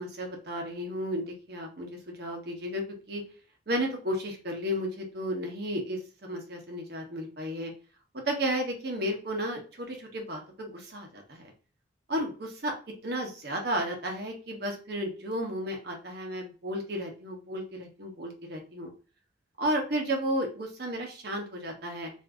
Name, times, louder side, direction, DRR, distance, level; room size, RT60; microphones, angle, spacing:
voice 1, 0.0-3.2 3.7-7.7 8.2-11.5 12.1-12.7 13.0-18.9 19.6-22.1, equal, 55° right, 2 dB, 0.9 m, -33 dB
2.6 x 2.5 x 3.4 m, 0.36 s
head